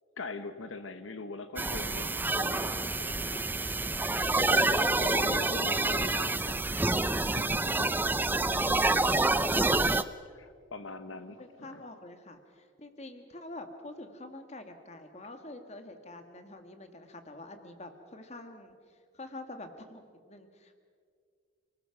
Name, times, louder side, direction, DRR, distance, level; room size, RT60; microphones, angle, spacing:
voice 1, 0.2-3.4 4.5-6.6 7.2-7.9 8.3-9.2 10.3-11.8, left 3 dB, 80° left, 10 dB, 1.1 m, -43 dB
sound 1, 1.6-10.0, right 2 dB, 10° right, 0.5 m, -27 dB
voice 2, 11.4-18.8 19.1-20.8, left 2 dB, 35° left, 7 dB, 1.9 m, -46 dB
29.0 x 19.5 x 6.0 m, 2.1 s
head